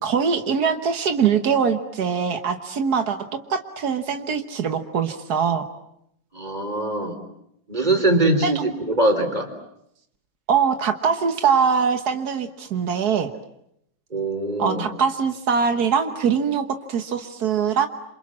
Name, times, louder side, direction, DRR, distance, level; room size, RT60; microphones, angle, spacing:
voice 1, 0.0-5.7 8.4-8.6 10.5-13.3 14.6-17.9, right 6 dB, 80° right, 7 dB, 0.8 m, -22 dB
voice 2, 6.3-7.2 7.7-9.5 14.1-14.8, right 2 dB, 15° right, 4 dB, 3.7 m, -22 dB
28.0 x 27.5 x 7.4 m, 0.76 s
omnidirectional pair, 3.6 m